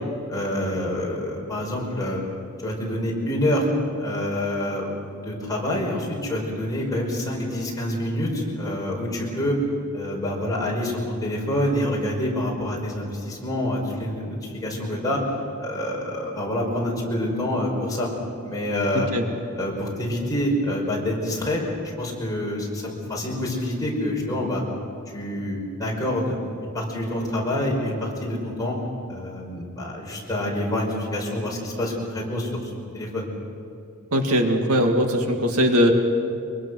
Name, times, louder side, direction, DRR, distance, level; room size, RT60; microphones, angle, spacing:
voice 1, 0.3-2.2 2.6-3.7 4.0-4.9 5.2-9.6 9.9-15.2 15.6-18.1 18.4-19.1 19.6-21.6 22.0-24.6 25.1-26.3 26.7-28.8 29.1-33.3, left 1 dB, 15° left, -3 dB, 5.2 m, -27 dB
voice 2, 34.1-35.9, equal, 75° right, 3 dB, 2.1 m, -20 dB
24.0 x 23.0 x 6.4 m, 2.5 s
head